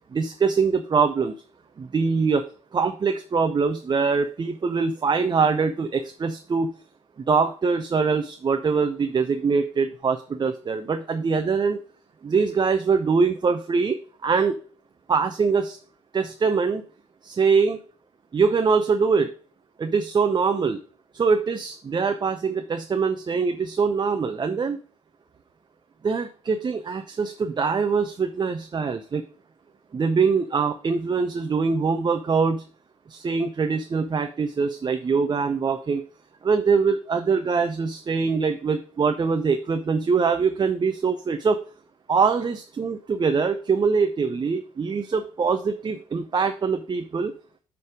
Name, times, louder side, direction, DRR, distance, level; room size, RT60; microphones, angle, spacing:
voice 1, 0.1-1.3 1.8-6.7 7.3-11.8 12.2-14.0 14.2-14.6 15.1-15.8 16.1-16.8 17.2-17.8 18.3-19.3 19.8-20.8 21.1-24.8 26.0-29.2 29.9-32.6 33.1-36.0 36.4-41.6 42.1-47.3, right 5 dB, 30° right, 7 dB, 0.7 m, -23 dB
6.4 x 5.4 x 4.9 m, 0.41 s
figure-of-eight pair, 45°, 14 cm